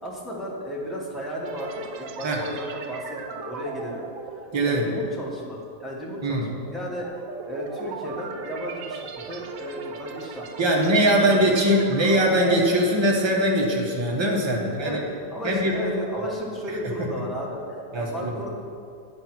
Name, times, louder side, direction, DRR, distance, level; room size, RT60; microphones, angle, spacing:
voice 1, 0.0-4.0 4.6-10.4 10.7-11.6 14.6-18.5, equal, ahead, -4 dB, 0.8 m, -34 dB
sound 1, 1.4-14.0 14.3-14.5 15.0-16.4, right 5 dB, 75° right, 0.7 m, -38 dB
voice 2, 4.5-4.8 6.2-6.5 10.6-15.0 15.4-15.7 17.9-18.3, right 1 dB, 35° right, -1 dB, 0.4 m, -21 dB
9.3 x 3.3 x 5.9 m, 2.3 s
omnidirectional pair, 1.9 m